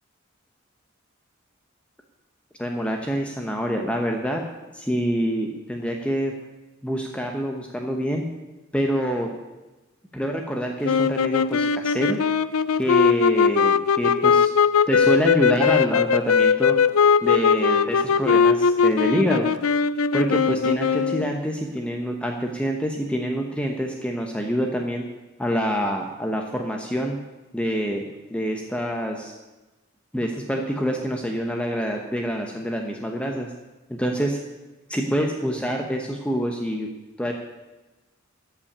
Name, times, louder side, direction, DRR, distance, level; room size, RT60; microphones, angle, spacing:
voice 1, 2.6-4.4 4.7-6.3 6.8-8.2 8.7-9.3 10.1-12.2 12.8-14.5 14.9-16.8 17.2-19.5 20.1-25.0 25.4-27.2 27.5-28.0 28.3-29.3 30.1-33.5 33.9-34.4 34.9-36.9 37.2-37.3, equal, 5° left, 1 dB, 1.0 m, -26 dB
sound 1, 10.8-21.3, left 6 dB, 85° left, 0.5 m, -20 dB
14.0 x 5.8 x 8.7 m, 1.1 s
head